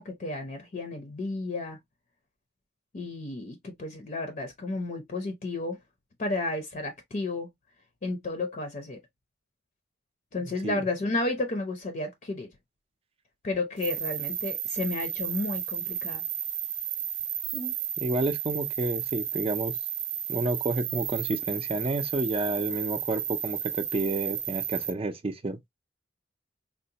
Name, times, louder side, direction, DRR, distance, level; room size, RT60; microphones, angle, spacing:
voice 1, 0.0-1.8 2.9-5.8 6.2-7.5 8.0-9.0 10.3-12.5 13.4-16.2, left 2 dB, 45° left, 0.6 m, -32 dB
voice 2, 10.4-10.8 17.5-19.8 20.3-25.7, right 2 dB, 30° right, 0.5 m, -30 dB
sound 1, 13.8-24.9, right 9 dB, 80° right, 0.6 m, -33 dB
3.8 x 2.1 x 2.7 m
head